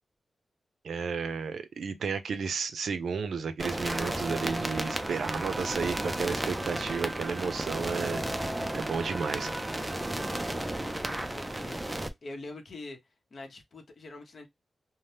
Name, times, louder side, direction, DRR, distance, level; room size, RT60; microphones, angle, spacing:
voice 1, 0.8-9.5, right 5 dB, 90° right, 0.4 m, -33 dB
sound 1, 3.6-12.1, right 1 dB, 15° right, 0.4 m, -33 dB
sound 2, 5.1-11.2, equal, 10° left, 1.2 m, -51 dB
voice 2, 11.3-13.0 13.3-14.5, left 2 dB, 55° left, 0.7 m, -44 dB
2.7 x 2.0 x 3.2 m
wide cardioid pair, 135°, 0 cm